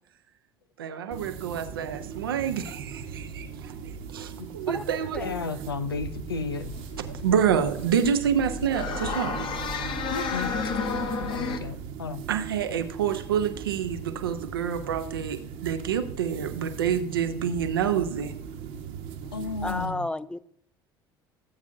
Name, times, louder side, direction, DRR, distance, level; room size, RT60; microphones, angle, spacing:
voice 1, 0.8-3.7 4.1-5.2 7.1-9.5 12.3-18.3, right 8 dB, 75° right, 0.9 m, -27 dB
sound 1, 1.1-19.9, right 7 dB, 60° right, 1.3 m, -39 dB
voice 2, 5.2-6.7 10.1-10.8 11.2-12.2 19.3-20.1, left 5 dB, 85° left, 0.6 m, -33 dB
sound 2, 6.6-11.6, left 4 dB, 45° left, 1.2 m, -32 dB
voice 3, 19.6-20.4, left 2 dB, 10° left, 0.5 m, -32 dB
18.0 x 8.2 x 2.7 m
figure-of-eight pair, 60°, 12 cm